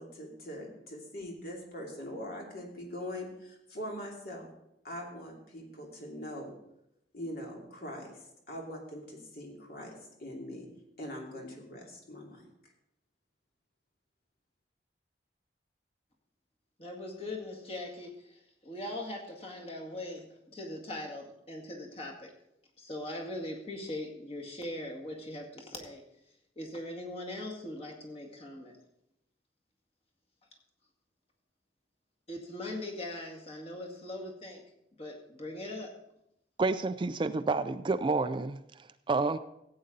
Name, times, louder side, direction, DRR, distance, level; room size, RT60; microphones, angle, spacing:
voice 1, 0.0-4.5 4.8-6.6 7.1-8.2 8.5-9.9 10.2-10.7 11.0-12.4, equal, 60° left, -1 dB, 2.8 m, -42 dB
voice 2, 16.8-22.3 22.8-26.0 26.6-28.7 32.3-34.6 35.0-35.9, left 1 dB, 35° left, 0 dB, 2.1 m, -40 dB
voice 3, 36.6-39.4, right 3 dB, 30° right, 12 dB, 0.3 m, -30 dB
15.0 x 8.7 x 4.0 m, 0.82 s
head